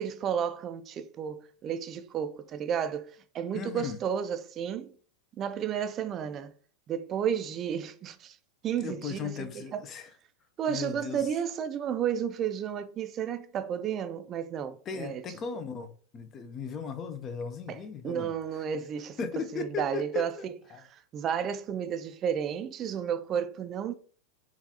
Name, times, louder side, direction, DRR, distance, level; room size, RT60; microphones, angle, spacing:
voice 1, 0.0-4.9 5.4-6.5 6.9-8.4 8.6-9.8 10.6-15.2 17.7-23.9, right 8 dB, 30° right, 0.4 m, -32 dB
voice 2, 3.5-4.0 8.8-10.1 10.7-11.2 14.9-18.3 19.2-20.3 20.7-20.8, left 6 dB, 30° left, 0.5 m, -37 dB
3.9 x 2.4 x 2.8 m
hypercardioid pair, 125°, 0 cm